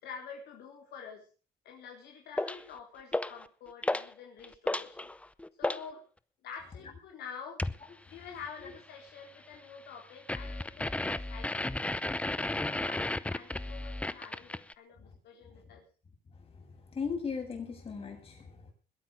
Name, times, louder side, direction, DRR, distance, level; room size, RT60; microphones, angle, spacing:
voice 1, 0.0-1.3 1.6-5.1 5.6-6.0 6.4-7.6 8.1-15.8, left 6 dB, 75° left, 1 dB, 4.5 m, -48 dB
sound 1, 2.4-2.6 3.1-3.5 3.8-4.1 4.4-5.9 7.6-7.8 10.3-14.7, left 2 dB, 5° left, 0.7 m, -33 dB
voice 2, 16.6-18.7, left 5 dB, 35° left, 2 dB, 7.7 m, -38 dB
21.0 x 9.0 x 6.5 m, 0.37 s
cardioid pair, 110°, 17 cm